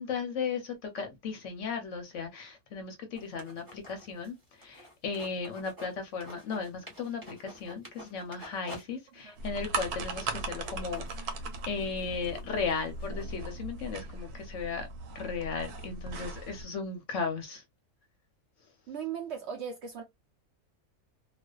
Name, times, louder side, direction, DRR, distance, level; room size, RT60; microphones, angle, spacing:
voice 1, 0.0-17.6, left 5 dB, 65° left, 0.8 m, -36 dB
sound 1, 3.2-5.9 6.2-8.8 9.2-9.3 9.7-13.2, equal, 15° right, 0.8 m, -50 dB
sound 2, 9.4-16.7, right 3 dB, 85° right, 1.1 m, -38 dB
voice 2, 18.9-20.0, right 7 dB, 65° right, 0.7 m, -37 dB
2.5 x 2.3 x 2.2 m
omnidirectional pair, 1.6 m